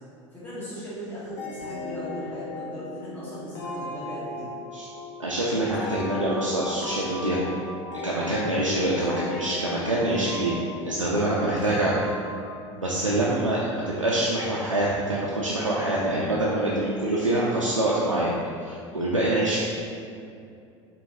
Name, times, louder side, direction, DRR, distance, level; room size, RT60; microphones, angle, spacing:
voice 1, 0.3-4.5 11.0-11.8, equal, 10° left, -12 dB, 1.4 m, -38 dB
sound 1, 1.4-13.8, left 2 dB, 60° left, 0.6 m, -38 dB
voice 2, 5.2-7.4 8.0-10.5 10.9-11.9 12.8-19.6, right 1 dB, 90° right, -6 dB, 0.4 m, -25 dB
4.6 x 3.0 x 2.6 m, 2.4 s
figure-of-eight pair, 70°, 16 cm